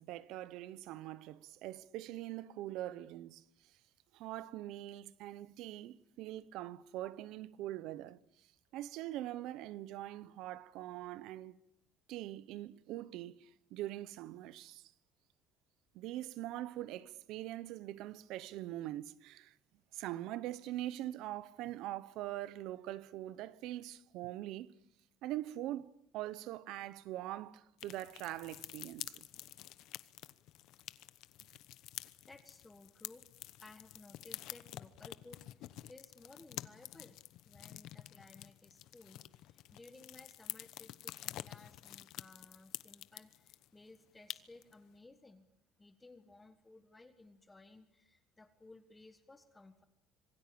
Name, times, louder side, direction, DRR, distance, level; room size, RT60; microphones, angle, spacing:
voice 1, 0.0-3.4 4.1-8.2 8.7-11.6 12.1-13.5 13.7-14.8 15.9-19.5 19.9-24.7 25.2-29.3, right 14 dB, 65° right, 1.0 m, -43 dB
sound 1, 27.8-43.7 43.9-44.0 44.3-44.7, left 15 dB, 60° left, 1.0 m, -49 dB
voice 2, 32.3-33.3 33.6-37.2 37.4-45.5 45.8-49.8, left 2 dB, 10° left, 1.4 m, -58 dB
26.0 x 22.0 x 8.7 m
cardioid pair, 160°, 0 cm